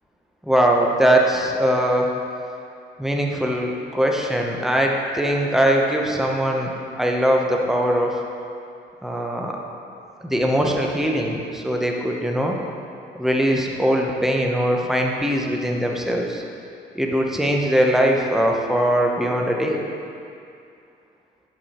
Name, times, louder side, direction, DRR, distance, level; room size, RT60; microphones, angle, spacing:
voice 1, 0.4-2.2 3.0-8.2 9.0-9.6 10.2-12.6 13.1-16.4 16.9-19.8, equal, ahead, 0 dB, 0.9 m, -21 dB
11.0 x 4.9 x 4.4 m, 2.5 s
cardioid pair, 90°, 20 cm